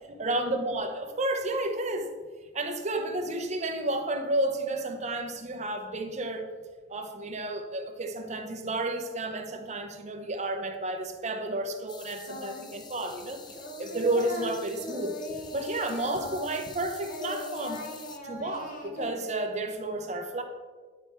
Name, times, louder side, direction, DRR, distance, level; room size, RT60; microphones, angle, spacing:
voice 1, 0.2-2.1 2.5-6.5 6.9-13.4 13.8-15.2 15.5-17.9 18.2-20.4, right 2 dB, 35° right, 5 dB, 0.9 m, -31 dB
Forest Insects Day High Frequency, 11.9-18.2, left 5 dB, 25° left, 0.5 m, -48 dB
Singing, 12.3-12.8 13.1-16.8 17.0-19.1, left 1 dB, 45° left, 1.1 m, -39 dB
9.8 x 4.6 x 4.5 m, 1.5 s
head